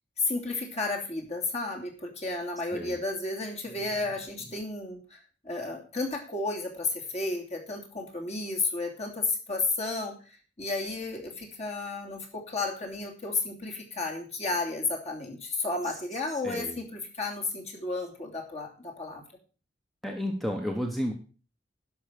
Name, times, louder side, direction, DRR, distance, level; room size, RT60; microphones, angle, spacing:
voice 1, 0.2-5.2 5.4-10.1 10.6-19.2, left 3 dB, 35° left, 1 dB, 2.9 m, -32 dB
voice 2, 16.4-16.8 20.0-21.1, equal, ahead, 2 dB, 1.1 m, -31 dB
11.0 x 6.1 x 6.7 m, 0.37 s
head